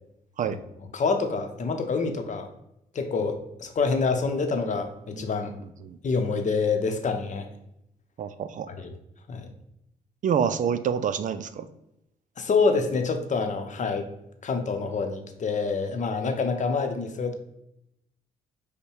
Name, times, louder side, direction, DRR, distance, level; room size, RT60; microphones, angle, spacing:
voice 1, 0.9-2.5 2.9-5.5 6.0-7.5 8.7-8.9 9.3-9.5 12.4-14.1 14.4-17.3, left 4 dB, 50° left, 6 dB, 0.8 m, -26 dB
voice 2, 8.2-8.7 10.2-11.7, right 7 dB, 50° right, 12 dB, 0.4 m, -27 dB
5.3 x 2.2 x 4.7 m, 0.82 s
supercardioid pair, 65°, 16 cm